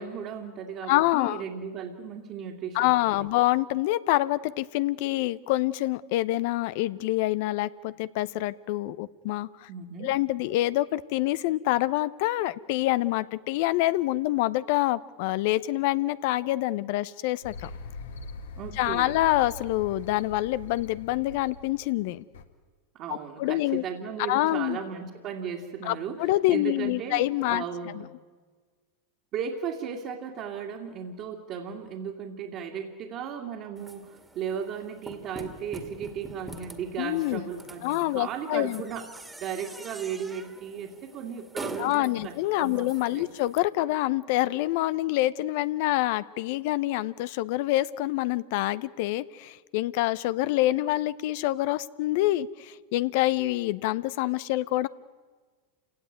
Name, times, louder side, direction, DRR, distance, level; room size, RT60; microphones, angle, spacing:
voice 1, 0.0-3.3 9.7-10.1 18.6-19.2 22.9-28.1 29.3-39.1 39.4-43.3, right 7 dB, 45° right, -1 dB, 2.5 m, -36 dB
voice 2, 0.9-1.4 2.7-9.7 10.0-17.7 18.8-22.2 23.4-23.8 24.2-24.8 25.8-27.6 27.9-28.0 37.0-37.5 37.8-38.8 41.8-54.9, left 16 dB, 65° left, 17 dB, 0.7 m, -26 dB
sound 1, 17.4-22.4, left 4 dB, 80° left, 1.9 m, -42 dB
sound 2, 33.8-43.6, right 1 dB, 10° right, 2.1 m, -45 dB
28.0 x 17.5 x 9.4 m, 1.5 s
hypercardioid pair, 105°, 0 cm